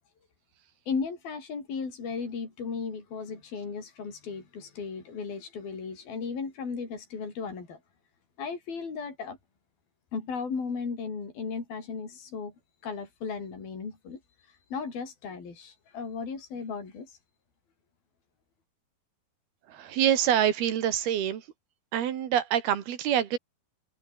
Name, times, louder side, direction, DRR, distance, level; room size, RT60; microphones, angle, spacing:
voice 1, 0.9-7.8 8.4-9.4 10.1-12.5 12.8-14.2 14.5-17.1, left 5 dB, 70° left, 7.5 m, -36 dB
voice 2, 19.7-21.5 21.9-23.4, right 10 dB, 85° right, 4.1 m, -26 dB
omnidirectional pair, 4.3 m